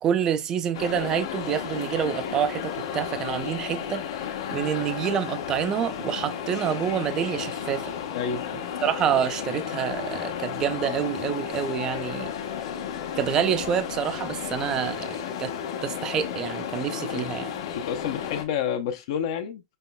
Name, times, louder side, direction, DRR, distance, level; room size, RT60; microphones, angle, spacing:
voice 1, 0.0-4.0 4.5-7.9 8.8-12.3 13.2-15.5 15.8-17.5, right 9 dB, 20° right, 0.5 m, -27 dB
sound 1, 0.7-18.4, left 8 dB, 80° left, 1.0 m, -33 dB
voice 2, 8.1-8.4 16.9-17.3 17.7-19.6, left 8 dB, 55° left, 0.6 m, -29 dB
5.4 x 3.0 x 2.2 m
supercardioid pair, 170°, 3 cm